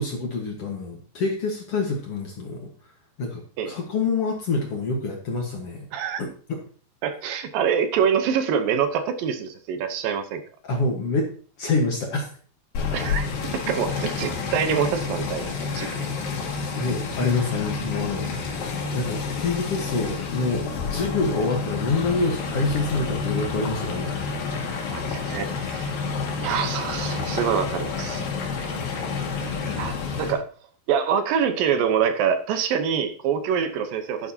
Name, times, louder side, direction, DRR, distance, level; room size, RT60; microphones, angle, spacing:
voice 1, 0.0-2.7 3.2-5.9 6.2-6.6 10.6-11.3 11.6-12.3 15.7-15.9 16.8-18.7 18.9-24.9 29.4-29.8, left 3 dB, 55° left, 1 dB, 1.8 m, -27 dB
voice 2, 7.0-10.4 12.9-13.3 13.5-16.0 24.9-25.9 26.4-28.2 29.7-30.4 30.9-34.3, right 7 dB, 75° right, 8 dB, 2.6 m, -25 dB
sound 1, 12.7-30.3, left 5 dB, 75° left, 3.6 m, -29 dB
11.0 x 11.0 x 2.8 m, 0.42 s
omnidirectional pair, 4.2 m